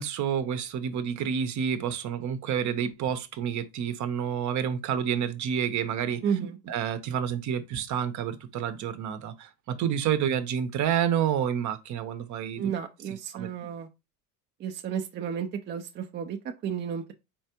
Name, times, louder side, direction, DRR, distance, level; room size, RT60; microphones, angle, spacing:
voice 1, 0.0-6.2 6.7-12.6 13.3-13.5, right 8 dB, 50° right, 0.8 m, -29 dB
voice 2, 6.2-6.6 12.6-13.9 14.6-17.1, right 7 dB, 30° right, 0.4 m, -32 dB
4.4 x 3.3 x 2.9 m
supercardioid pair, 110°, 37 cm